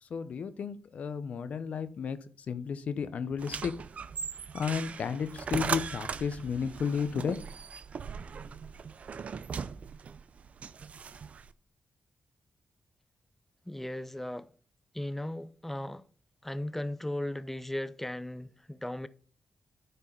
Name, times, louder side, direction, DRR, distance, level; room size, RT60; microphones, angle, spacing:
voice 1, 0.0-3.7 4.5-7.4, left 6 dB, 70° left, 0.8 m, -33 dB
sound 1, 3.4-11.5, right 6 dB, 65° right, 0.6 m, -39 dB
voice 2, 13.7-14.5 14.9-16.0 16.4-19.1, left 1 dB, 10° left, 0.8 m, -36 dB
10.0 x 4.6 x 5.4 m
supercardioid pair, 45°, 3 cm